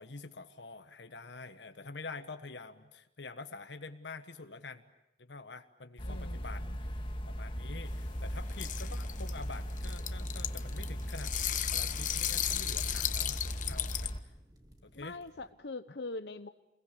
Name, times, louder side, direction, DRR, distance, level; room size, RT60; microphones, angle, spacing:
voice 1, 0.0-4.9 5.2-6.6 7.3-11.3 11.7-14.3 14.8-15.2, left 3 dB, 90° left, 7 dB, 1.4 m, -47 dB
voice 2, 6.0-6.8 14.9-16.5, left 3 dB, 70° left, 10 dB, 0.9 m, -43 dB
sound 1, 6.0-14.2, equal, 30° left, 1.8 m, -38 dB
sound 2, 7.9-14.1, left 11 dB, 45° left, 1.0 m, -36 dB
sound 3, 8.0-15.5, equal, 25° right, 2.5 m, -57 dB
28.5 x 21.5 x 8.6 m, 0.92 s
head